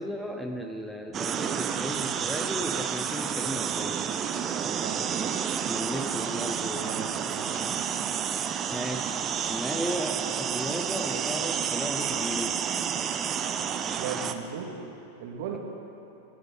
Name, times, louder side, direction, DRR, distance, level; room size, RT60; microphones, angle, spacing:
voice 1, 0.0-4.1 5.6-7.8 8.7-9.2 9.5-12.6, equal, 5° left, 4 dB, 0.8 m, -35 dB
sound 1, 1.1-14.3, right 8 dB, 25° right, 0.8 m, -30 dB
voice 2, 6.7-7.5 14.0-14.7 15.2-15.6, right 7 dB, 50° right, 1 dB, 2.1 m, -36 dB
25.0 x 11.0 x 4.2 m, 2.9 s
figure-of-eight pair, 90°, 0 cm